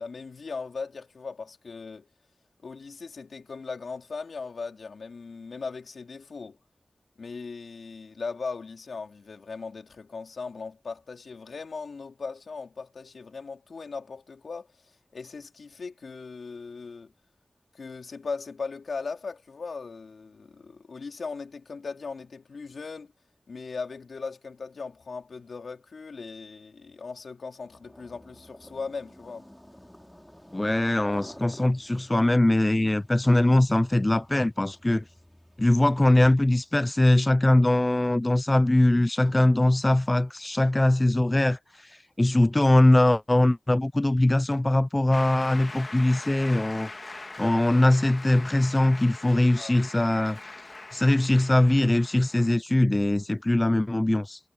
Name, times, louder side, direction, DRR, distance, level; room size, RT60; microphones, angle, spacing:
voice 1, 0.0-2.1 2.6-6.6 7.2-17.1 17.7-23.1 23.5-29.5 49.6-49.7, left 4 dB, 85° left, 3.6 m, -38 dB
sound 1, 27.6-36.7, equal, 10° left, 3.4 m, -51 dB
voice 2, 30.5-35.0 35.6-46.9 47.4-50.4 50.9-54.4, left 1 dB, 30° left, 0.5 m, -22 dB
Shout / Cheering / Applause, 45.1-52.6, left 3 dB, 55° left, 1.7 m, -42 dB
cardioid pair, 40°, 0 cm